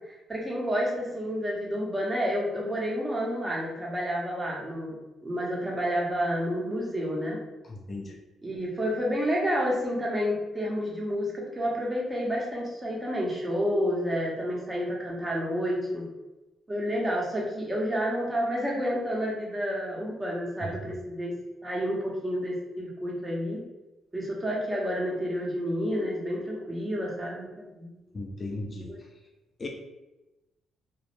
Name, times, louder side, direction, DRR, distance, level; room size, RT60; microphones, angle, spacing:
voice 1, 0.0-5.0 5.2-7.4 8.4-16.0 16.7-21.4 21.6-23.6 24.1-27.9 28.9-29.0, equal, 20° right, -3 dB, 0.7 m, -30 dB
voice 2, 7.6-8.2 20.6-20.7 28.1-28.9 29.6-29.7, left 2 dB, 30° left, 1 dB, 0.3 m, -36 dB
2.1 x 2.0 x 3.0 m, 1.0 s
cardioid pair, 90°, 0 cm